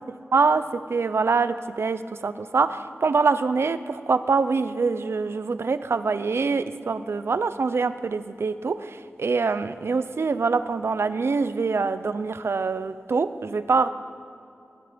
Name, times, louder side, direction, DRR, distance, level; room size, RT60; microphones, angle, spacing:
voice 1, 0.1-13.9, right 4 dB, 80° right, 12 dB, 0.8 m, -24 dB
25.5 x 19.5 x 5.3 m, 2.6 s
wide cardioid pair, 85°, 4 cm